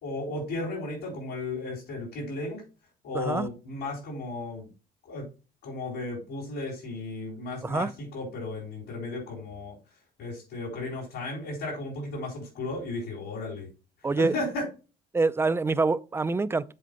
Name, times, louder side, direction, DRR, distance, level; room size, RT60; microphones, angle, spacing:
voice 1, 0.0-2.6 3.0-4.7 5.1-5.2 5.6-9.8 10.2-13.7 14.2-14.7, left 2 dB, 70° left, 4.7 m, -34 dB
voice 2, 3.1-3.5 7.6-7.9 14.0-14.3 15.1-16.7, right 3 dB, 15° right, 0.5 m, -26 dB
7.7 x 4.4 x 5.3 m
cardioid pair, 110°, 17 cm